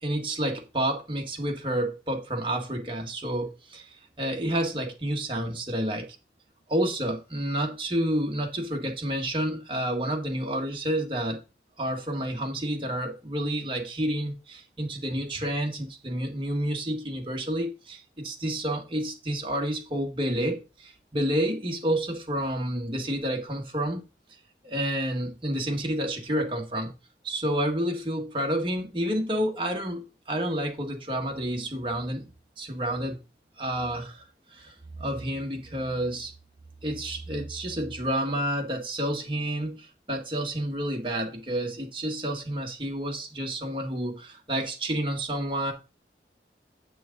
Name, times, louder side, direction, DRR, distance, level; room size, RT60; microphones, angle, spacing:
voice 1, 0.0-6.1 6.7-11.4 11.8-24.0 24.6-26.9 27.2-32.3 32.6-33.2 33.6-34.2 34.5-36.3 36.8-45.7, right 1 dB, 30° right, 1.7 m, -29 dB
8.7 x 6.2 x 3.9 m
head